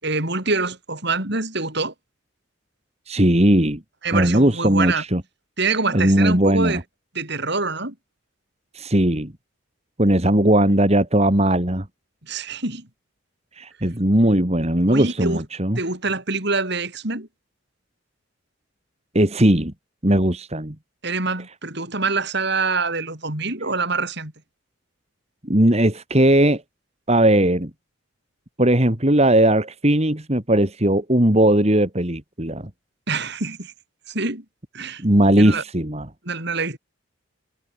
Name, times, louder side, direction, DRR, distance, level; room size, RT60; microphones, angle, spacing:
voice 1, 0.0-1.9 4.0-5.0 5.6-6.8 7.1-7.9 12.2-12.9 14.9-15.4 15.8-17.3 21.0-24.3 33.1-33.7 34.1-34.4 34.7-35.0 35.4-35.6 36.2-36.8, right 3 dB, 55° right, 5.8 m, -25 dB
voice 2, 3.1-3.8 4.1-5.2 5.9-6.8 8.7-9.3 10.0-11.9 13.6-15.8 19.1-19.7 20.0-20.8 25.4-26.6 27.1-27.7 28.6-32.7 35.0-36.1, right 1 dB, 30° right, 2.5 m, -18 dB
head